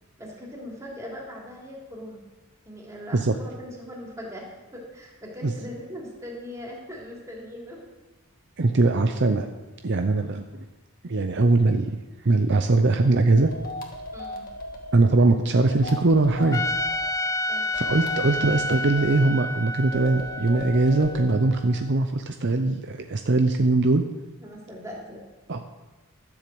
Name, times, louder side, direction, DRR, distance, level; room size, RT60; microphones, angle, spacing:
voice 1, 0.2-2.2 2.7-4.4 4.7-7.8 14.1-14.4 17.5-17.7 24.4-25.2, equal, 15° right, -3 dB, 3.2 m, -40 dB
voice 2, 8.6-9.5 9.8-10.7 11.0-12.0 12.2-13.5 14.9-16.6 17.7-24.0 25.5-25.6, right 2 dB, 55° right, 6 dB, 0.7 m, -21 dB
sound 1, 13.4-14.9 15.6-17.1 17.7-19.3 19.9-21.4, left 1 dB, 40° left, 1.9 m, -37 dB
Trumpet, 16.5-21.7, left 2 dB, 15° left, 0.3 m, -30 dB
13.0 x 7.2 x 7.7 m, 1.1 s
head